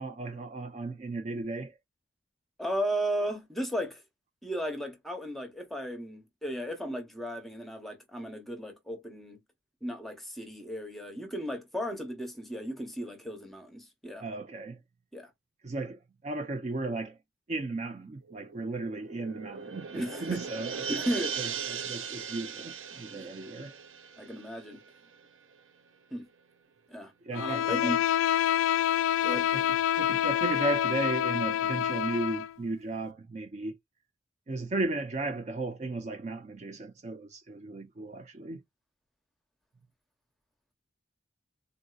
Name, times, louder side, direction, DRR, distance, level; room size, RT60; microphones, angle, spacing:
voice 1, 0.0-1.8 14.2-14.8 15.6-17.2 17.5-21.0 21.4-23.8 27.2-28.0 29.3-33.8 34.5-38.6, right 2 dB, 35° right, 0.4 m, -35 dB
voice 2, 2.6-4.0 4.4-9.4 9.8-14.3 15.1-15.3 19.9-20.4 20.9-21.4 23.1-23.3 24.2-24.8 26.1-26.3 26.9-28.0 29.2-29.5, equal, ahead, 0.8 m, -35 dB
sound 1, 18.3-25.3 25.6-25.7, right 6 dB, 80° right, 0.6 m, -39 dB
Bowed string instrument, 27.3-32.5, left 10 dB, 85° left, 0.3 m, -27 dB
3.7 x 2.6 x 2.3 m
head